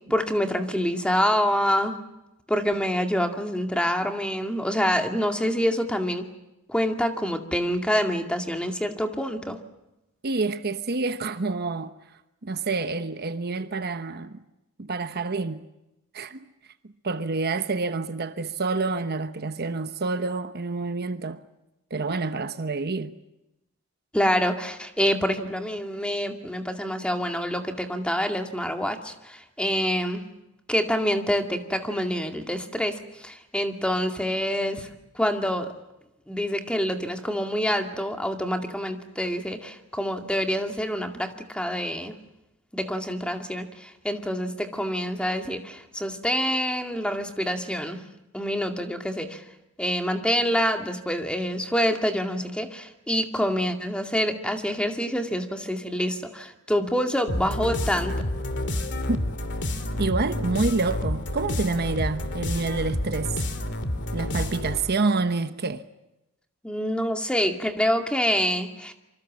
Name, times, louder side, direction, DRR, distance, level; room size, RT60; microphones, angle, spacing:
voice 1, 0.1-2.0 2.5-6.3 6.7-9.6 24.1-30.2 30.7-34.9 35.1-35.7 36.3-42.1 42.7-48.0 48.3-49.4 49.8-58.2 66.6-68.9, equal, 5° left, 2.2 m, -26 dB
voice 2, 10.2-11.9 12.4-14.4 14.8-15.6 16.1-16.5 17.0-21.4 21.9-23.1 59.1-59.2 60.0-63.4 64.1-65.8, right 3 dB, 50° right, 1.0 m, -28 dB
sound 1, 57.3-65.0, left 1 dB, 60° left, 2.5 m, -29 dB
26.5 x 24.5 x 7.5 m
head